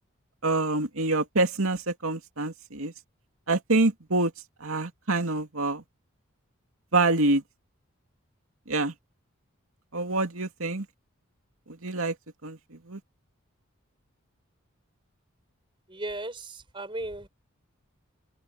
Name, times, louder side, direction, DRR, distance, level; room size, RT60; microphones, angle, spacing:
voice 1, 0.4-2.9 3.5-4.3 4.6-5.8 6.9-7.4 8.7-8.9 9.9-10.9 11.7-12.1 12.4-13.0, right 2 dB, 75° right, 2.4 m, -26 dB
voice 2, 15.9-17.3, right 1 dB, 25° right, 5.9 m, -36 dB
open air
head